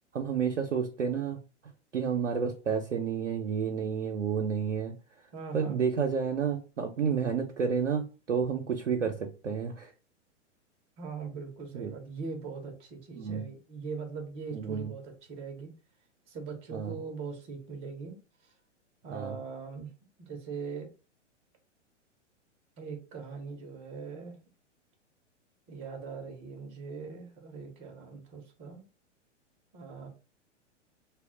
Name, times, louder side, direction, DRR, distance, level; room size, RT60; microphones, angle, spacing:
voice 1, 0.1-1.4 1.9-4.9 5.5-9.9 11.7-11.9 13.1-13.4 14.5-14.9 16.7-17.0 19.1-19.4, right 6 dB, 80° right, 2 dB, 0.5 m, -30 dB
voice 2, 5.3-5.7 7.0-7.2 11.0-15.7 16.3-18.2 18.4-18.5 19.0-19.9 20.2-20.9 22.8-24.4 25.7-28.8 29.7-30.1, right 5 dB, 15° right, 4 dB, 0.5 m, -41 dB
2.0 x 2.0 x 3.7 m, 0.33 s
figure-of-eight pair, 105°, 37 cm